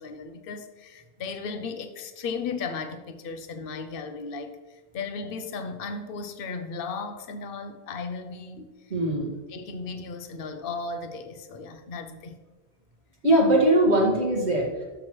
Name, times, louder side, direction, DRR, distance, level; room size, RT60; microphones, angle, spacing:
voice 1, 0.0-4.6 4.9-8.7 9.5-12.4, left 4 dB, 60° left, 8 dB, 0.9 m, -35 dB
voice 2, 8.9-9.3 13.2-14.8, right 1 dB, 80° right, -3 dB, 2.3 m, -21 dB
12.5 x 6.1 x 3.1 m, 1.3 s
omnidirectional pair, 1.1 m